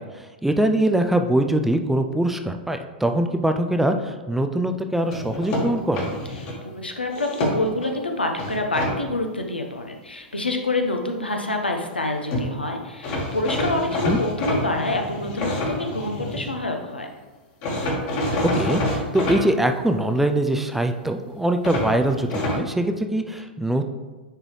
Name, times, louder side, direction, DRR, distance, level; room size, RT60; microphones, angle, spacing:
voice 1, 0.0-6.2 14.1-14.2 18.4-23.9, right 1 dB, 5° right, 6 dB, 0.3 m, -23 dB
sound 1, 5.1-6.6 7.1-7.9 8.4-8.9 12.0-12.1 12.3-12.5 13.0-16.5 17.6-19.4 21.6-22.6, left 1 dB, 40° left, 1.7 m, -27 dB
voice 2, 6.6-17.1, left 2 dB, 80° left, 3 dB, 0.9 m, -27 dB
9.9 x 3.7 x 3.2 m, 1.3 s
figure-of-eight pair, 100°, 5 cm